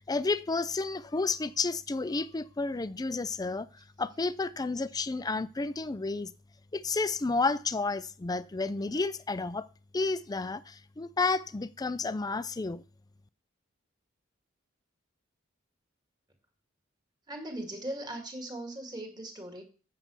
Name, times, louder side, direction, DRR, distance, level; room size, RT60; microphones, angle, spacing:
voice 1, 0.1-3.7 4.0-6.3 6.7-9.7 9.9-12.8, left 3 dB, 20° left, 0.4 m, -31 dB
voice 2, 17.3-19.6, right 1 dB, 20° right, 2.1 m, -39 dB
8.1 x 5.9 x 7.0 m
head